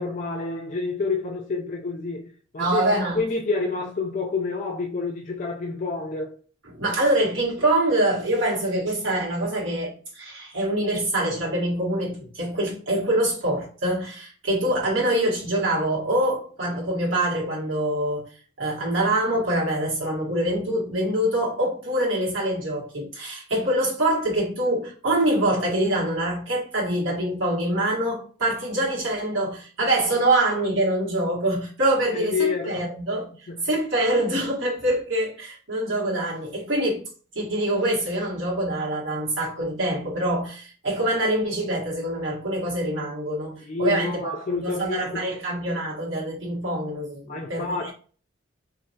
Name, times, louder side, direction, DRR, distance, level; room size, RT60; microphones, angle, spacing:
voice 1, 0.0-2.9 3.1-6.4 32.1-32.8 33.5-33.7 43.6-45.2 47.3-47.9, left 4 dB, 40° left, 0.4 m, -28 dB
voice 2, 2.6-3.2 6.8-18.3 18.6-33.3 33.6-37.0 37.3-47.9, right 1 dB, 85° right, 1.3 m, -25 dB
3.1 x 2.5 x 2.7 m
head